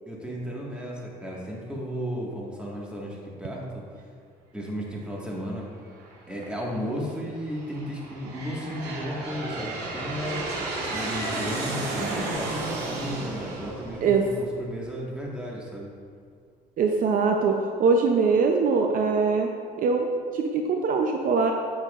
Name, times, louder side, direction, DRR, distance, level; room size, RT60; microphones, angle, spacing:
voice 1, 0.1-3.8 4.5-5.6 6.3-10.4 10.9-15.9, equal, 5° right, -4 dB, 1.7 m, -34 dB
Aircraft, 6.0-6.6 7.3-14.8, right 2 dB, 85° right, 1.4 m, -33 dB
voice 2, 16.8-19.5 19.8-21.5, right 4 dB, 55° right, 3 dB, 0.6 m, -22 dB
8.9 x 7.4 x 2.5 m, 2.2 s
cardioid pair, 110°, 17 cm